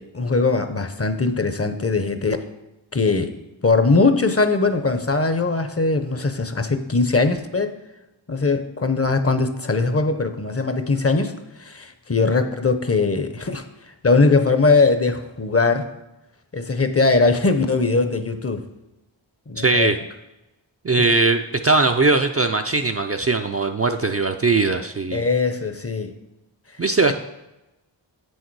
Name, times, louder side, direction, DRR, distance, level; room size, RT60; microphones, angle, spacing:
voice 1, 0.0-2.4 2.9-3.3 3.6-7.7 8.3-11.3 11.6-13.6 14.0-15.9 16.5-18.6 19.5-19.9 21.0-21.1 25.1-26.1, left 3 dB, 30° left, 9 dB, 0.7 m, -20 dB
voice 2, 19.6-20.0 20.8-25.2 26.8-27.1, right 3 dB, 35° right, 5 dB, 0.4 m, -20 dB
7.8 x 6.5 x 4.6 m, 0.98 s
wide cardioid pair, 75°, 46 cm